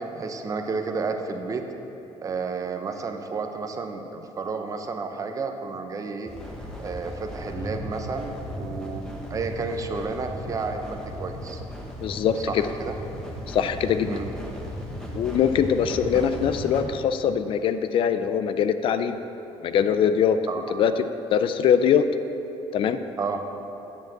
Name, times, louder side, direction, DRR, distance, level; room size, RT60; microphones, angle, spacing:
voice 1, 0.0-1.6 2.2-6.3 6.8-11.6 12.5-13.0 14.1-14.3 16.1-16.3 20.5-20.6 23.2-23.4, right 4 dB, 30° right, 6 dB, 0.7 m, -31 dB
sound 1, 6.3-16.8, equal, 5° left, 1.3 m, -36 dB
voice 2, 12.0-12.6 13.5-14.1 15.1-19.2 19.6-20.4 20.8-20.9 21.3-22.0 22.7-23.0, left 8 dB, 55° left, 10 dB, 0.4 m, -22 dB
10.0 x 5.2 x 7.2 m, 3.0 s
cardioid pair, 135°, 11 cm